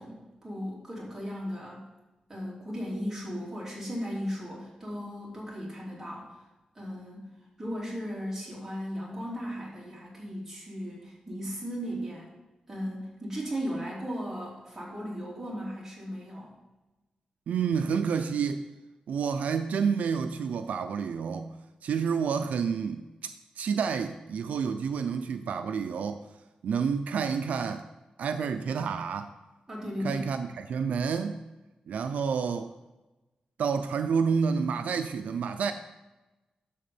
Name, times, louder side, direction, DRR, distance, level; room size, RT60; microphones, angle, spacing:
voice 1, 0.0-1.9 2.3-6.4 6.7-7.3 7.6-12.3 12.7-16.5 29.7-30.3, equal, 15° right, -5 dB, 2.8 m, -36 dB
voice 2, 17.5-18.6 19.1-21.5 21.8-23.3 23.6-26.2 26.6-27.8 28.2-29.3 30.0-31.4 31.9-32.7 33.6-35.7, right 6 dB, 85° right, 8 dB, 0.5 m, -29 dB
11.0 x 3.6 x 6.9 m, 1.1 s
wide cardioid pair, 165°, 2 cm